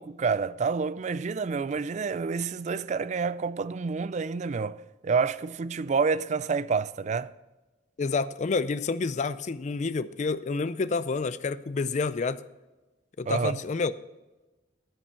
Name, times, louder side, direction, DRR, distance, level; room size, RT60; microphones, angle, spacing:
voice 1, 0.0-4.8 5.0-7.3 13.3-13.5, right 5 dB, 40° right, 0.3 m, -28 dB
voice 2, 8.0-12.4 13.2-13.9, left 4 dB, 40° left, 0.4 m, -29 dB
10.0 x 9.9 x 4.4 m
head